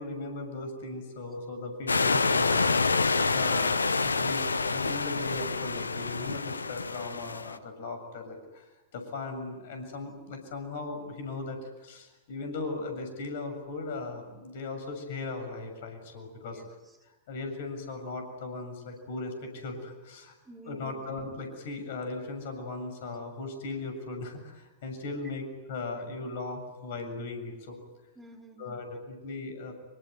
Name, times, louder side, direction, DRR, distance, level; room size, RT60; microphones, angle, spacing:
voice 1, 0.0-3.7 4.0-8.7 8.9-16.6 17.3-20.3 20.7-27.8 28.6-29.7, left 3 dB, 55° left, 6 dB, 7.1 m, -38 dB
sound 1, 1.9-7.6, left 4 dB, 75° left, 1.0 m, -27 dB
voice 2, 16.4-17.0 20.4-20.9 28.2-28.9, right 2 dB, 10° right, 1 dB, 5.1 m, -51 dB
26.0 x 24.0 x 9.3 m, 1.1 s
figure-of-eight pair, 90°, 0 cm